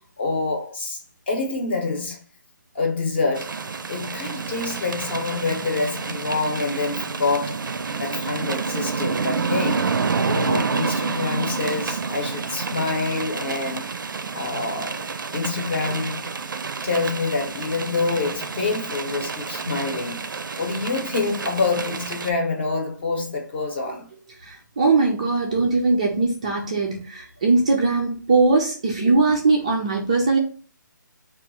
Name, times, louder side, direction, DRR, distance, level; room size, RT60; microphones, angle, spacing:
voice 1, 0.2-1.0 1.3-2.2 2.7-7.6 8.0-9.9 10.2-13.9 14.3-15.1 15.3-16.2 16.8-24.1, left 3 dB, 30° left, 0.8 m, -26 dB
sound 1, 3.4-22.3, right 5 dB, 85° right, 0.5 m, -29 dB
voice 2, 24.4-30.4, right 3 dB, 20° right, 0.3 m, -20 dB
3.3 x 2.3 x 4.2 m
hypercardioid pair, 170°, 11 cm